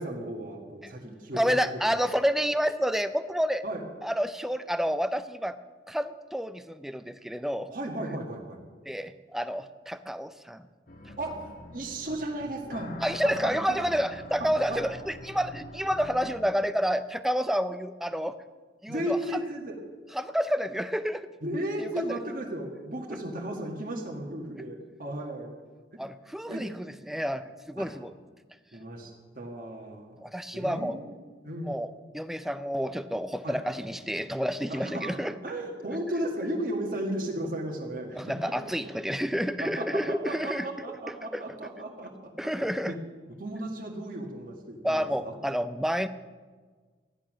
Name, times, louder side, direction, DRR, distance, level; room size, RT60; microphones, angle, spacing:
voice 1, 0.0-1.7 3.6-3.8 7.7-8.6 11.2-13.0 13.2-13.8 14.4-14.8 18.9-19.8 21.4-25.6 26.5-26.7 27.8-27.9 28.7-30.2 30.5-31.1 31.4-31.8 33.4-33.6 34.7-38.7 39.6-42.3 42.6-43.0 43.4-45.3, right 1 dB, 50° right, 0 dB, 1.8 m, -35 dB
voice 2, 1.3-3.6 4.0-5.6 5.9-7.7 8.9-10.7 13.0-18.4 18.8-19.2 20.1-21.3 22.1-22.2 26.0-28.1 30.2-31.0 31.6-35.3 38.2-40.7 41.3-41.4 42.4-42.9 44.8-46.1, equal, ahead, 11 dB, 0.5 m, -29 dB
sound 1, 10.9-16.4, left 2 dB, 50° left, 1.1 m, -44 dB
14.5 x 11.0 x 6.2 m, 1.5 s
head